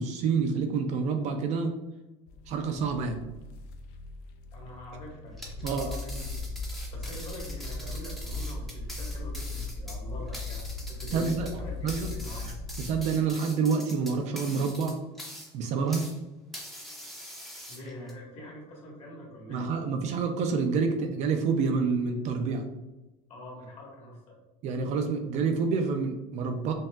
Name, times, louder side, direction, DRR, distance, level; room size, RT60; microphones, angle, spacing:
voice 1, 0.0-1.7 2.5-3.2 5.6-5.9 11.1-11.5 11.8-12.1 12.8-15.0 15.5-16.1 19.5-22.6 24.6-26.7, right 5 dB, 45° right, 5 dB, 0.4 m, -28 dB
sound 1, 2.3-13.0, left 2 dB, 65° left, 0.5 m, -38 dB
voice 2, 4.5-6.5 6.9-12.5 16.8-17.0 17.7-19.7 23.3-24.4, left 1 dB, 40° left, -2 dB, 1.5 m, -44 dB
sound 2, 5.3-16.2 16.5-18.1, equal, ahead, 0.7 m, -43 dB
5.4 x 2.7 x 2.3 m, 1.0 s
cardioid pair, 150°, 17 cm